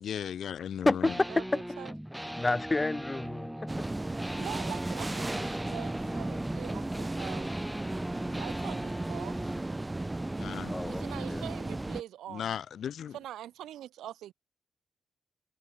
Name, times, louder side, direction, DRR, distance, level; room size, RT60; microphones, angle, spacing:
voice 1, 0.0-1.1 10.4-10.7 12.3-13.2, left 9 dB, 70° left, 0.5 m, -36 dB
voice 2, 0.9-1.3 2.4-3.9 10.7-11.4, left 2 dB, 25° left, 0.7 m, -29 dB
sound 1, 1.0-9.7, equal, 5° right, 1.6 m, -40 dB
sound 2, 3.7-12.0, right 2 dB, 20° right, 0.4 m, -35 dB
voice 3, 4.4-7.5 8.3-9.6 10.8-12.6 13.1-14.3, right 12 dB, 80° right, 1.1 m, -43 dB
supercardioid pair, 45°, 0 cm